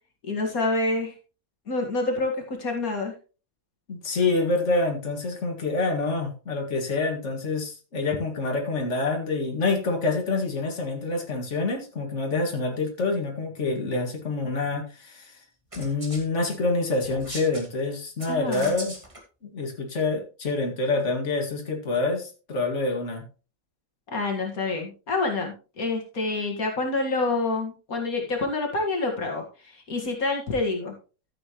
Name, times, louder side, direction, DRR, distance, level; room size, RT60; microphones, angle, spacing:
voice 1, 0.2-1.1 1.7-3.1 18.3-18.7 24.1-30.9, left 3 dB, 80° left, 1 dB, 2.4 m, -27 dB
voice 2, 3.9-15.3 15.8-18.9 19.5-23.2, left 3 dB, 55° left, 1 dB, 2.4 m, -27 dB
sound 1, 15.7-16.2 17.0-17.7 18.2-19.2, right 1 dB, 20° right, 2.2 m, -39 dB
13.5 x 7.7 x 3.1 m, 0.34 s
omnidirectional pair, 1.5 m